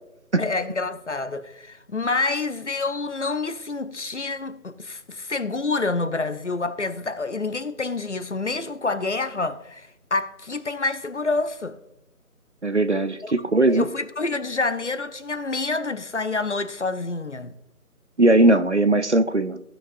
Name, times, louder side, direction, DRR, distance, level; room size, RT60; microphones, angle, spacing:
voice 1, 0.4-11.8 13.2-13.3 13.7-17.5, left 3 dB, 50° left, 0.7 m, -27 dB
voice 2, 12.6-13.8 18.2-19.6, right 2 dB, 50° right, 0.5 m, -19 dB
16.5 x 6.2 x 2.5 m
figure-of-eight pair, 170°, 45 cm